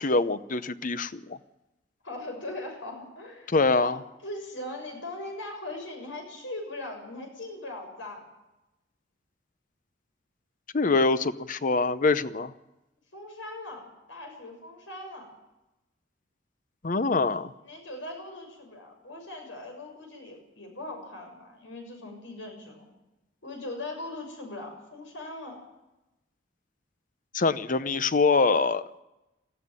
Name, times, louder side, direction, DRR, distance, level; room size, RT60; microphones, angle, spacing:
voice 1, 0.0-1.4 3.5-4.0 10.7-12.5 16.8-17.5 27.3-28.8, left 3 dB, 45° left, 14 dB, 0.7 m, -24 dB
voice 2, 2.0-8.2 13.1-15.3 17.6-22.8 23.4-25.6, left 2 dB, 90° left, 3 dB, 6.8 m, -40 dB
18.5 x 14.5 x 9.6 m, 0.98 s
head